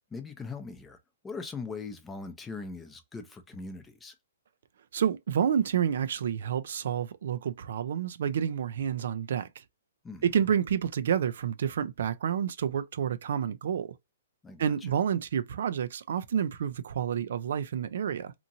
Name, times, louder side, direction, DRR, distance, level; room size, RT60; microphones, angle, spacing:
voice 1, 0.1-1.0 1.2-4.1 10.0-10.2 14.4-14.9, left 4 dB, 10° left, 0.5 m, -40 dB
voice 2, 4.9-9.5 10.2-13.9 14.6-18.3, right 8 dB, 70° right, 0.4 m, -29 dB
2.9 x 2.5 x 2.6 m
hypercardioid pair, 140°, 0 cm